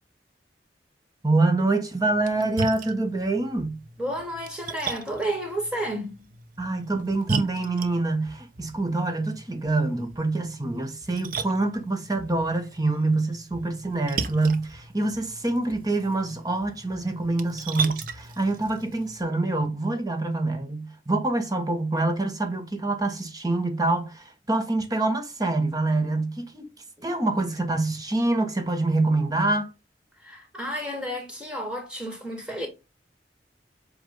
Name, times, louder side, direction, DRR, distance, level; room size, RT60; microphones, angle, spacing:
voice 1, 1.2-3.8 6.6-26.7 27.0-29.7, right 2 dB, 20° right, 1.1 m, -26 dB
Splash splatter, 2.1-19.2, right 4 dB, 50° right, 0.8 m, -37 dB
voice 2, 4.0-6.3 27.0-27.1 30.2-32.7, right 1 dB, 5° right, 1.9 m, -31 dB
7.8 x 2.6 x 5.2 m
head